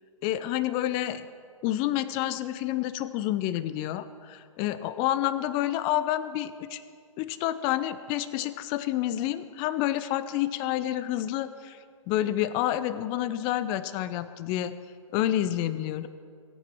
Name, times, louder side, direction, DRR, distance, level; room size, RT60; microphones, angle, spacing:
voice 1, 0.2-1.3 1.6-6.8 7.2-11.8 12.1-14.8 15.1-16.1, left 13 dB, 30° left, 13 dB, 0.7 m, -29 dB
23.5 x 9.5 x 4.6 m, 2.2 s
figure-of-eight pair, 120°, 18 cm